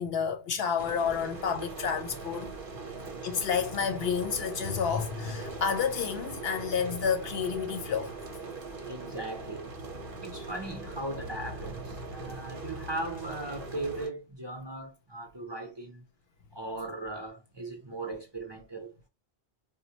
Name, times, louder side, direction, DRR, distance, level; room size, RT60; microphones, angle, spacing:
voice 1, 0.0-2.5 3.2-8.1 12.2-12.3, left 7 dB, 65° left, 0.8 m, -30 dB
sound 1, 0.8-14.1, right 3 dB, 55° right, 1.0 m, -41 dB
voice 2, 8.8-9.7 10.2-16.0 16.5-18.9, right 2 dB, 25° right, 0.7 m, -38 dB
4.1 x 2.1 x 2.7 m
omnidirectional pair, 1.1 m